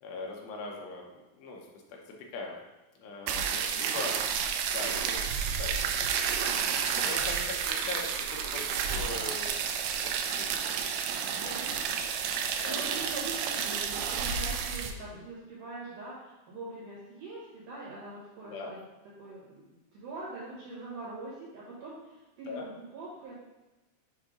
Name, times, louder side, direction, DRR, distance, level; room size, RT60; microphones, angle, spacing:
voice 1, 0.0-2.6 3.0-4.2 4.7-5.3 5.6-6.5 7.0-10.1 10.4-10.9 11.4-12.1 12.6-12.8 18.4-18.7 22.5-22.7, left 3 dB, 80° left, 0 dB, 2.9 m, -41 dB
sound 1, 3.3-14.9, right 7 dB, 90° right, 2.2 m, -31 dB
voice 2, 11.3-11.8 12.7-18.8 19.2-23.3, right 2 dB, 70° right, -6 dB, 2.0 m, -43 dB
7.3 x 2.7 x 5.0 m, 1.1 s
omnidirectional pair, 5.0 m